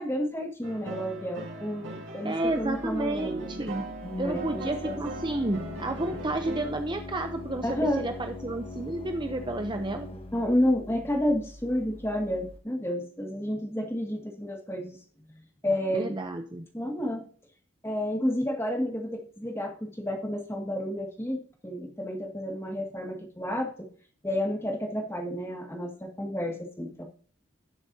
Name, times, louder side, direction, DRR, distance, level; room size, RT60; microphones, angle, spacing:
voice 1, 0.0-3.6 4.2-5.0 7.6-8.1 10.3-15.0 15.6-16.2 16.7-17.2 17.8-23.9 24.2-27.0, equal, 10° left, 2 dB, 1.9 m, -30 dB
sound 1, 0.6-6.9, right 2 dB, 65° right, 5.5 m, -40 dB
voice 2, 2.2-3.9 4.2-10.1 15.9-16.6, right 2 dB, 20° right, 6 dB, 0.6 m, -31 dB
Organ, 2.4-12.6, left 2 dB, 30° left, 1.1 m, -42 dB
17.5 x 7.2 x 2.7 m, 0.44 s
head